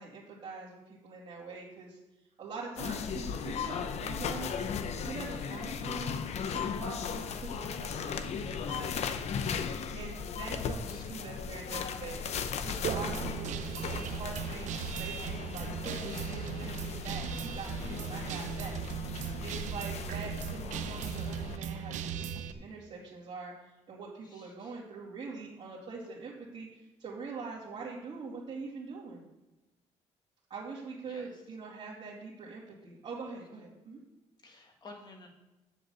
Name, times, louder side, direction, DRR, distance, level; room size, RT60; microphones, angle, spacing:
voice 1, 0.0-2.0 2.4-4.5 5.0-6.1 6.5-9.1 9.9-12.3 12.6-19.2 19.4-23.5 23.9-29.2 30.5-34.0, right 4 dB, 50° right, -7 dB, 2.5 m, -43 dB
sound 1, 2.8-21.6, left 6 dB, 60° left, 0.8 m, -37 dB
voice 2, 5.3-5.8 10.9-11.0 13.8-14.2 18.4-18.7 24.2-24.8 31.1-31.4 34.4-35.3, left 3 dB, 35° left, 2 dB, 2.0 m, -54 dB
Guitar, 12.8-22.5, right 8 dB, 75° right, 0.7 m, -38 dB
7.8 x 7.4 x 7.0 m, 1.0 s
cardioid pair, 135°, 12 cm